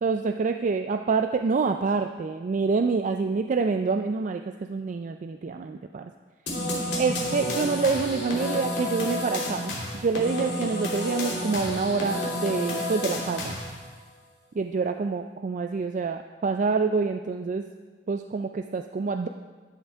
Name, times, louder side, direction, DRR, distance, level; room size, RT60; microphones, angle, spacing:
voice 1, 0.0-6.1 7.0-13.6 14.5-17.6 18.1-19.3, right 4 dB, 45° right, 6 dB, 0.4 m, -27 dB
sound 1, 6.5-13.8, left 1 dB, 65° left, 2.9 m, -30 dB
12.0 x 11.0 x 3.5 m, 1.4 s
head